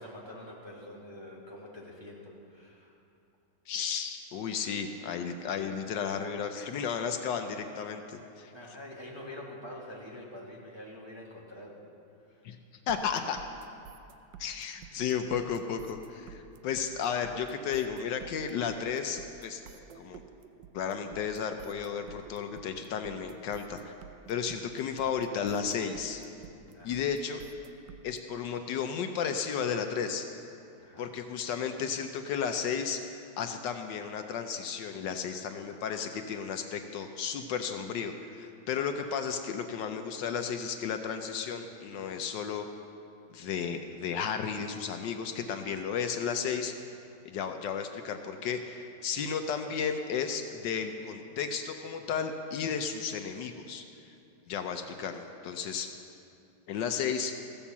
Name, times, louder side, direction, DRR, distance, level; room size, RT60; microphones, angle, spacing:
voice 1, 0.0-2.9 8.2-11.8 12.3-12.4 26.7-27.4 30.8-31.1, left 1 dB, 15° right, -4 dB, 1.4 m, -46 dB
voice 2, 3.7-8.5 12.4-12.6 12.9-13.4 14.4-19.6 20.0-20.2 20.7-23.9 24.3-26.2 26.8-27.4 28.0-30.2 31.0-42.7 43.3-46.7 47.2-53.8 54.5-55.9 56.7-57.3, left 7 dB, 75° left, 6 dB, 1.3 m, -33 dB
sound 1, 12.9-28.2, right 9 dB, 75° right, 1.3 m, -50 dB
14.5 x 7.1 x 7.1 m, 2.6 s
omnidirectional pair, 2.1 m